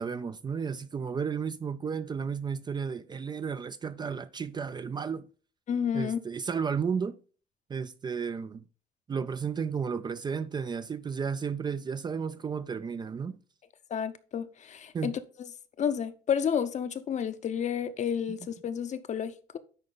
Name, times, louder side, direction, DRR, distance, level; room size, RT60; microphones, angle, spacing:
voice 1, 0.0-5.3 5.9-7.1 7.7-8.6 9.1-13.4 14.9-15.1, right 6 dB, 25° right, 0.4 m, -33 dB
voice 2, 5.7-6.2 13.9-15.2 15.8-19.6, left 8 dB, 45° left, 0.7 m, -31 dB
10.0 x 4.2 x 3.9 m
cardioid pair, 110°, 17 cm